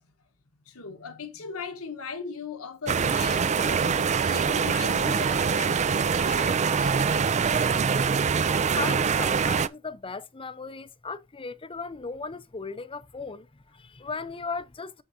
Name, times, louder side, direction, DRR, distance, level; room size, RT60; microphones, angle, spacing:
voice 1, 0.7-7.2, left 5 dB, 70° left, 1.2 m, -39 dB
sound 1, 2.9-9.7, right 6 dB, 30° right, 0.4 m, -24 dB
voice 2, 8.7-15.0, left 4 dB, 25° left, 0.6 m, -37 dB
14.0 x 4.7 x 2.7 m
head